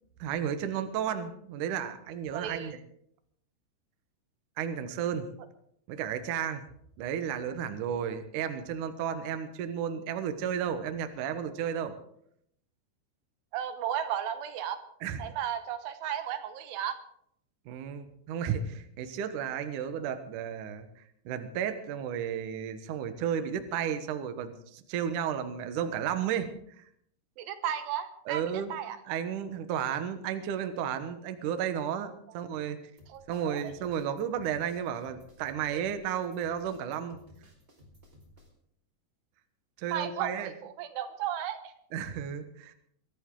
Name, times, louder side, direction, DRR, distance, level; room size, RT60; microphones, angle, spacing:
voice 1, 0.2-2.8 4.6-5.3 5.9-6.6 7.0-12.0 15.0-15.2 17.7-26.5 26.8-26.9 28.3-28.8 29.1-32.8 33.3-37.2 39.8-40.5 41.9-42.7, right 8 dB, 65° right, 8 dB, 2.3 m, -33 dB
voice 2, 2.3-2.8 13.5-14.8 15.2-17.0 27.4-29.0 33.1-33.7 35.7-35.8 39.9-41.7, right 10 dB, 85° right, 9 dB, 3.3 m, -34 dB
sound 1, 33.0-38.5, left 1 dB, 15° right, 4.6 m, -57 dB
22.5 x 13.5 x 3.8 m, 0.70 s
omnidirectional pair, 4.7 m